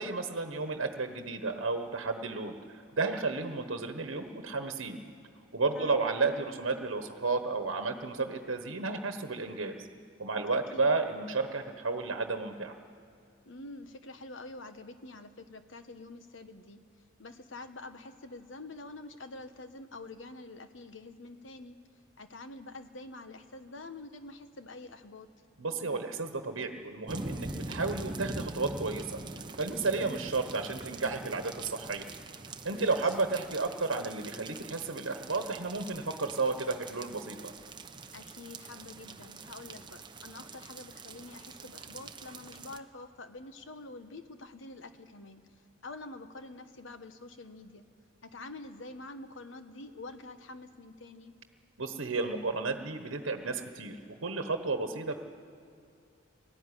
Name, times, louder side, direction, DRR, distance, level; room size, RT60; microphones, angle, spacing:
voice 1, 0.0-5.0 5.5-9.9 10.2-12.8 25.6-29.1 29.6-32.1 32.6-37.5 51.8-55.2, right 3 dB, 85° right, 6 dB, 1.2 m, -32 dB
voice 2, 5.7-6.2 10.5-10.9 13.4-16.8 17.2-21.8 22.2-25.3 29.8-30.2 32.7-33.2 38.1-45.4 45.8-47.8 48.2-51.3, left 2 dB, 65° left, 9 dB, 1.2 m, -47 dB
sound 1, 27.1-42.8, right 2 dB, 25° right, 0.8 m, -44 dB
19.0 x 14.0 x 9.9 m, 2.6 s
head